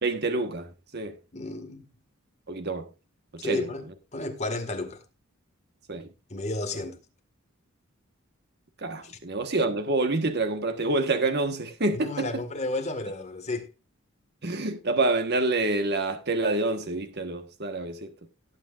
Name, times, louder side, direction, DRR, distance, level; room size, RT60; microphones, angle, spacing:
voice 1, 0.0-1.2 2.5-2.9 3.3-3.6 5.9-6.1 8.8-12.3 14.4-18.1, right 2 dB, 50° right, 1.4 m, -27 dB
voice 2, 1.3-1.9 3.4-5.0 6.3-7.0 9.0-9.2 11.9-13.7, left 2 dB, 30° left, 1.9 m, -32 dB
17.5 x 8.2 x 2.5 m
head